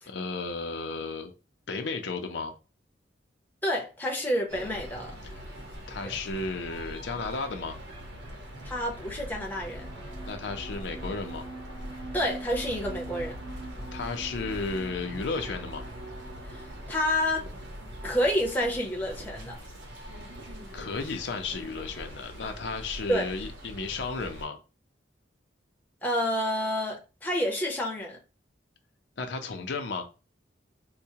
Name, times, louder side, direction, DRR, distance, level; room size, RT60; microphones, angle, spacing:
voice 1, 0.1-1.3 1.7-2.5 5.2-5.4 5.9-7.7 10.3-11.4 13.9-15.8 20.7-24.6 29.2-30.1, left 4 dB, 70° left, 0.5 m, -33 dB
voice 2, 3.6-5.2 6.0-6.1 8.6-9.9 12.1-13.3 16.5-17.5 18.0-19.6 23.1-23.3 26.0-28.2, equal, 10° left, 0.7 m, -29 dB
sound 1, 4.5-24.4, equal, 85° right, 1.0 m, -42 dB
sound 2, 9.4-17.0, right 2 dB, 35° right, 1.2 m, -45 dB
4.5 x 2.1 x 2.8 m
head